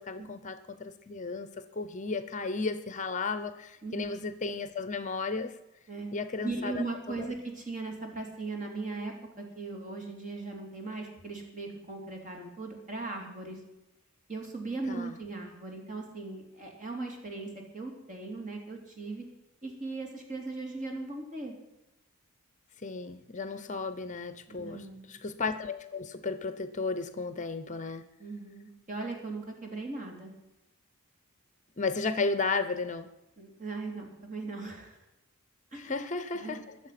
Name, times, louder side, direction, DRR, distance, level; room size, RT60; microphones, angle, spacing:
voice 1, 0.0-5.6 6.1-7.3 14.9-15.1 22.8-24.8 25.1-28.1 31.8-33.1 35.7-36.7, left 4 dB, 35° left, 12 dB, 0.7 m, -34 dB
voice 2, 6.4-13.6 14.3-19.3 19.6-21.6 24.5-25.2 28.2-30.3 33.4-35.0 35.7-36.0 36.3-36.6, right 3 dB, 35° right, 1 dB, 3.4 m, -38 dB
22.0 x 7.6 x 5.9 m, 0.92 s
head